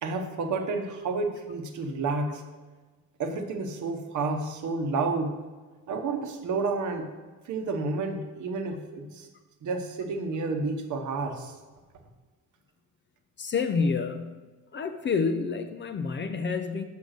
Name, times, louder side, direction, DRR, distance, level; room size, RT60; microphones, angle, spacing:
voice 1, 0.0-2.4 3.2-5.4 5.9-7.1 7.4-9.3 9.6-11.6, right 3 dB, 55° right, 5 dB, 1.0 m, -30 dB
voice 2, 13.4-14.4 14.7-16.8, left 5 dB, 35° left, 8 dB, 0.4 m, -28 dB
6.5 x 5.2 x 6.3 m, 1.3 s
cardioid pair, 145°, 36 cm